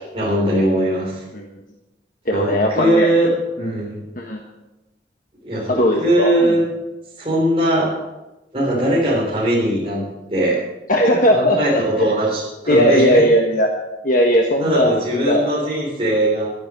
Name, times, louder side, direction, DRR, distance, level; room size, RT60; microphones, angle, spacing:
voice 1, 0.1-1.2 2.3-3.3 3.6-4.0 5.4-6.6 7.2-8.0 8.5-10.0 10.3-10.6 11.2-13.3 14.6-16.5, right 1 dB, 30° right, -7 dB, 3.7 m, -20 dB
voice 2, 2.3-3.1 3.6-3.7 4.2-4.4 5.7-6.5 10.9-12.1 12.7-13.7 14.0-14.9 15.2-15.4, equal, 45° left, 1 dB, 1.4 m, -17 dB
12.0 x 10.0 x 7.5 m, 1.0 s
head